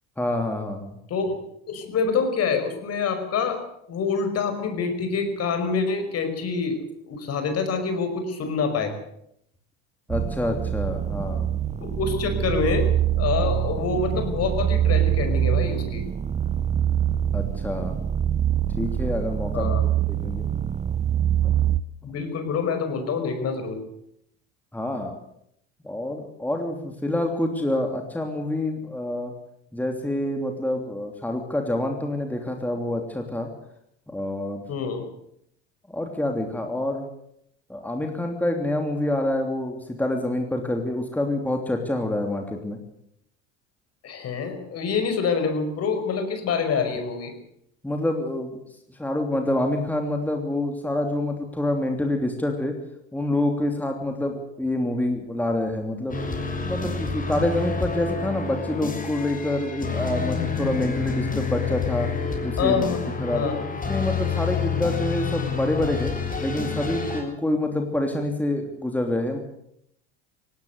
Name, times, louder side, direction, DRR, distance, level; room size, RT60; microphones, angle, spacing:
voice 1, 0.2-1.0 10.1-11.6 17.3-18.0 18.8-20.4 21.4-21.5 24.7-25.1 25.8-29.3 29.7-33.5 34.1-34.6 35.9-37.1 37.7-42.8 47.8-48.6 48.9-52.8 53.1-56.2 56.6-62.1 62.4-62.9 63.2-63.6 63.9-66.1 66.4-69.4, left 1 dB, 5° left, 3 dB, 3.1 m, -27 dB
voice 2, 1.1-3.6 3.9-6.8 7.1-8.9 11.8-12.9 13.2-16.1 19.5-19.8 22.0-23.8 34.7-35.0 44.0-47.4 62.6-63.0 63.3-63.6, left 5 dB, 45° left, 7 dB, 5.4 m, -26 dB
sound 1, 10.1-21.8, right 10 dB, 20° right, 0.7 m, -24 dB
sound 2, 56.1-67.2, left 5 dB, 25° left, 6.6 m, -28 dB
18.5 x 18.0 x 8.1 m, 0.75 s
hypercardioid pair, 85°, 34 cm